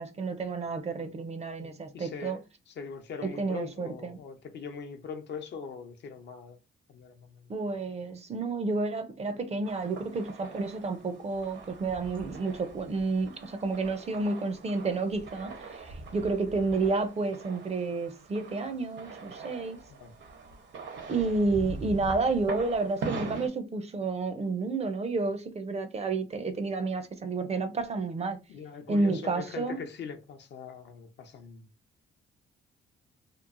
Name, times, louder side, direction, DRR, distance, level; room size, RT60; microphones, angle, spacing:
voice 1, 0.0-2.4 3.2-4.2 7.5-19.8 21.1-28.4 28.9-29.8, right 3 dB, 35° right, 0.5 m, -30 dB
voice 2, 1.6-6.6 6.9-7.5 19.9-20.1 28.5-31.7, left 6 dB, 60° left, 0.6 m, -42 dB
sound 1, 9.6-23.5, right 3 dB, 70° right, 0.8 m, -42 dB
3.0 x 2.0 x 2.4 m
cardioid pair, 90°, 20 cm